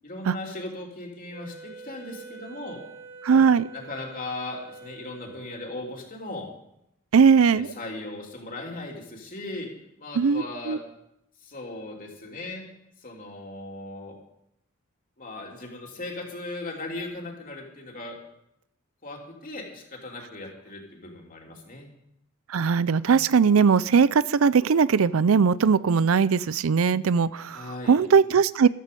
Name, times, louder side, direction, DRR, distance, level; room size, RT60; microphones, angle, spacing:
voice 1, 0.0-2.8 3.3-3.4 3.7-6.5 7.5-9.7 10.0-10.8 11.4-12.7 13.0-14.1 15.2-18.2 19.0-21.9 27.5-28.0, left 2 dB, 45° left, 0 dB, 3.2 m, -38 dB
Wind instrument woodwind instrument, 1.3-5.9, right 3 dB, 30° right, 2.6 m, -45 dB
voice 2, 3.2-3.7 7.1-7.7 10.2-10.8 22.5-28.7, right 6 dB, 85° right, 18 dB, 0.5 m, -20 dB
14.0 x 13.0 x 5.3 m, 0.80 s
head